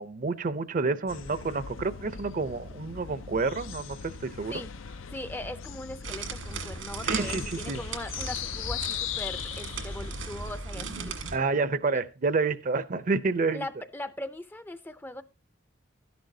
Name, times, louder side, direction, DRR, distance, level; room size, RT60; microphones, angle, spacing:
voice 1, 0.0-4.5 7.0-7.8 11.3-13.7, right 4 dB, 45° right, 0.6 m, -29 dB
JK Aviary, 1.1-10.6, left 8 dB, 90° left, 0.6 m, -39 dB
voice 2, 5.1-11.3 13.5-15.2, left 1 dB, 10° left, 0.4 m, -40 dB
sound 1, 6.0-11.4, right 4 dB, 85° right, 1.7 m, -37 dB
12.5 x 10.5 x 2.7 m
head